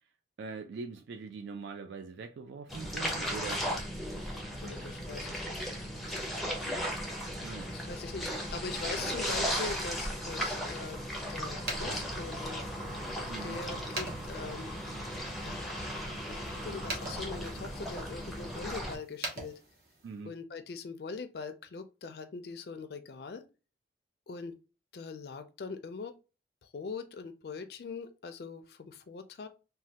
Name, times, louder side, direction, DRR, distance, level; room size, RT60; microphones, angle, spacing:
voice 1, 0.4-3.6 4.6-4.7 7.4-7.7 13.3-13.6 20.0-20.3, right 4 dB, 75° right, 0.3 m, -42 dB
sound 1, 2.7-19.0, equal, ahead, 0.5 m, -36 dB
voice 2, 4.6-5.7 7.7-12.6 13.4-14.8 15.4-15.8 16.2-19.6 20.2-23.4 24.3-24.5 24.9-26.2 26.6-29.5, left 4 dB, 60° left, 0.4 m, -42 dB
sound 2, 11.5-20.2, right 2 dB, 55° right, 0.8 m, -45 dB
3.2 x 2.2 x 2.8 m
head